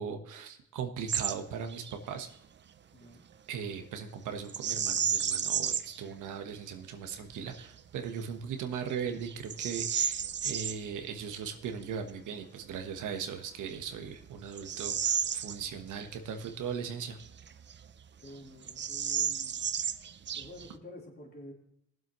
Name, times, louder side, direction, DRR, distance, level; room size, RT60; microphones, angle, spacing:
voice 1, 0.0-2.3 3.5-17.2, right 7 dB, 80° right, 6 dB, 1.3 m, -38 dB
Bird vocalization bird call bird song, 1.1-1.4 1.7-2.0 4.5-6.0 6.5-6.6 7.3-7.7 8.2-8.3 8.9-10.8 12.9-13.0 13.6-16.1 16.4-16.5 17.2-18.0 18.3-18.4 18.6-20.8, right 8 dB, 40° right, 0.5 m, -32 dB
voice 2, 2.9-3.2 18.2-19.6 20.4-21.5, left 1 dB, 35° left, -2 dB, 3.5 m, -49 dB
19.5 x 7.8 x 3.1 m, 0.74 s
cardioid pair, 90°, 30 cm